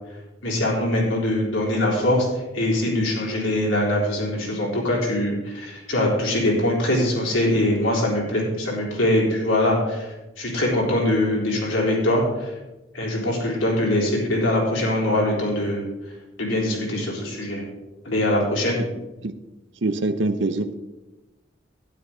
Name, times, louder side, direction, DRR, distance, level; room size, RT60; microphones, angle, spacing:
voice 1, 0.4-2.3 2.5-10.1 10.4-12.5 12.9-15.9 16.4-17.6 18.0-18.8, left 1 dB, 90° left, -3 dB, 3.8 m, -22 dB
voice 2, 19.8-20.8, right 2 dB, 70° right, 10 dB, 0.7 m, -24 dB
12.0 x 10.0 x 3.9 m, 1.0 s
head